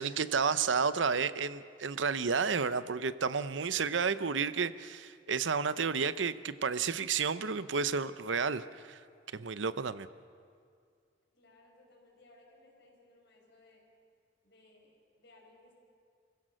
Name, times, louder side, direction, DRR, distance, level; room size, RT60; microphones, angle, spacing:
voice 1, 0.0-9.0 9.3-10.1, right 5 dB, 85° right, 14 dB, 0.8 m, -31 dB
voice 2, 11.3-13.8 14.4-15.7, left 2 dB, 65° left, -1 dB, 6.0 m, -62 dB
29.5 x 16.5 x 6.4 m, 2.2 s
head